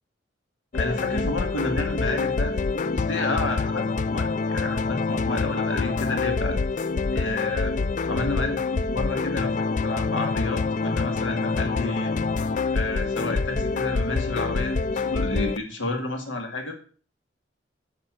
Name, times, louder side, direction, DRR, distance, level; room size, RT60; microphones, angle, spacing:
voice 1, 0.7-6.6 7.1-7.8 8.0-12.1 12.7-16.8, left 2 dB, 85° left, 4 dB, 2.3 m, -31 dB
sound 1, 0.7-15.6, left 4 dB, 40° left, 0.3 m, -26 dB
9.5 x 5.9 x 6.3 m, 0.41 s
head